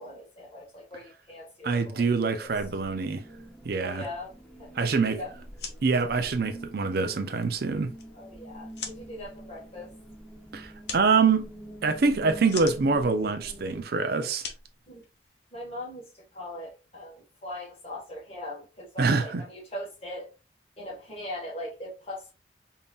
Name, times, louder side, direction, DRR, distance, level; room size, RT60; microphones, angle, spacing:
voice 1, 0.0-2.5 3.8-4.3 4.6-5.3 8.1-9.9 14.9-15.0 15.5-20.3 20.8-22.3, left 1 dB, 30° left, 1.4 m, -40 dB
voice 2, 1.6-3.2 3.6-4.0 4.8-5.2 5.8-7.9 10.5-11.5 11.8-14.5 19.0-19.4, right 4 dB, 55° right, 0.4 m, -25 dB
sound 1, 2.4-13.8, right 1 dB, 5° left, 0.7 m, -46 dB
sound 2, 5.4-15.6, left 6 dB, 55° left, 0.8 m, -45 dB
5.3 x 2.7 x 2.3 m
head